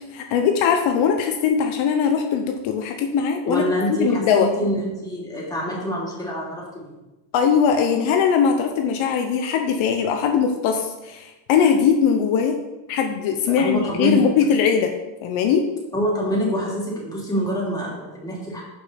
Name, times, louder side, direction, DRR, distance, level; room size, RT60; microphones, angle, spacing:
voice 1, 0.1-3.6 3.9-4.5 7.3-12.6 12.9-14.9 15.2-15.6, left 7 dB, 70° left, 5 dB, 0.9 m, -20 dB
voice 2, 3.4-6.9 13.5-14.3 15.9-18.6, equal, 10° left, -5 dB, 2.9 m, -25 dB
6.4 x 5.3 x 5.1 m, 1.0 s
cardioid pair, 105°, 49 cm